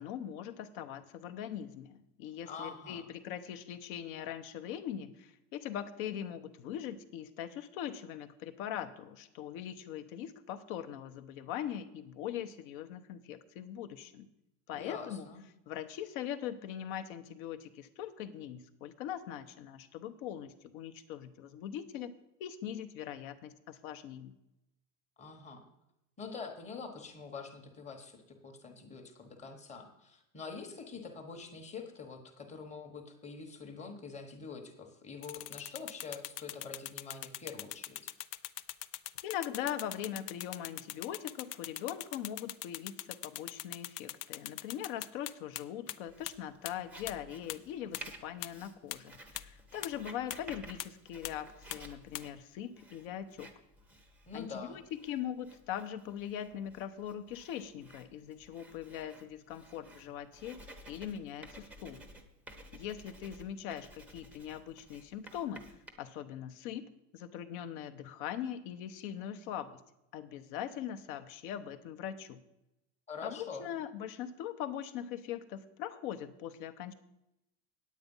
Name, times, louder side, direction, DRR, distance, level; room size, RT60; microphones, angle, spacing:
voice 1, 0.0-14.3 14.7-15.3 15.7-22.1 22.4-24.3 39.2-53.5 54.3-54.8 55.1-60.6 60.9-62.0 62.7-65.7 66.0-69.8 70.1-72.4 73.2-76.9, left 10 dB, 50° left, 11 dB, 0.9 m, -41 dB
voice 2, 2.5-3.0 14.7-15.4 25.2-25.7 26.2-38.0 54.3-54.8 73.1-73.7, left 5 dB, 15° left, 4 dB, 1.1 m, -45 dB
sound 1, 35.2-45.6 45.9-46.0 46.3-46.4 46.7-46.8 47.1-47.2 47.5-47.6 47.9-48.0 48.4-48.5 48.9-49.0 49.4-49.5 49.8-49.9 50.3-50.4 50.8-50.9 51.2-51.3 51.7-51.8 52.1-52.2, left 15 dB, 80° left, 0.7 m, -40 dB
Writing, 46.1-65.9, right 1 dB, 5° right, 0.7 m, -54 dB
9.3 x 8.5 x 5.4 m, 0.88 s
supercardioid pair, 150°, 48 cm